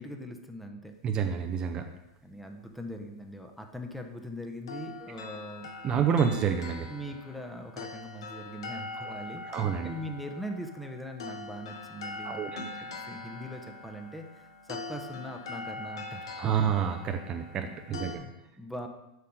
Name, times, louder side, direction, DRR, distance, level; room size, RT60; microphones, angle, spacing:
voice 1, 0.0-0.9 2.2-5.7 6.9-9.4 9.8-16.3 18.0-18.9, equal, ahead, 4 dB, 0.9 m, -41 dB
voice 2, 1.0-1.9 5.8-6.9 9.4-9.9 12.2-12.6 16.4-18.2, right 7 dB, 35° right, 6 dB, 0.6 m, -28 dB
sound 1, 4.7-18.2, left 3 dB, 75° left, 1.0 m, -42 dB
7.6 x 5.7 x 3.8 m, 0.91 s
hypercardioid pair, 100°, 3 cm